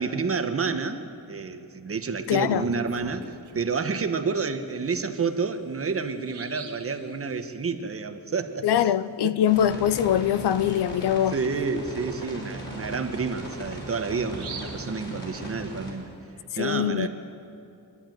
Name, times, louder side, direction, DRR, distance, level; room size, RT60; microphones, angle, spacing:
voice 1, 0.0-8.9 9.2-9.3 11.3-16.1 16.6-17.1, right 4 dB, 35° right, 1.2 m, -29 dB
voice 2, 2.3-2.7 8.6-11.4 16.5-17.1, left 10 dB, 75° left, 0.7 m, -23 dB
Bird vocalization bird call bird song, 2.3-3.7 5.2-5.3 5.7-5.8 6.2-6.9 10.4-10.5 10.9-11.0 11.5-15.8, right 6 dB, 80° right, 2.3 m, -44 dB
sound 1, 9.4-15.9, right 1 dB, 25° left, 5.4 m, -38 dB
25.0 x 11.5 x 9.3 m
cardioid pair, 125°, 40 cm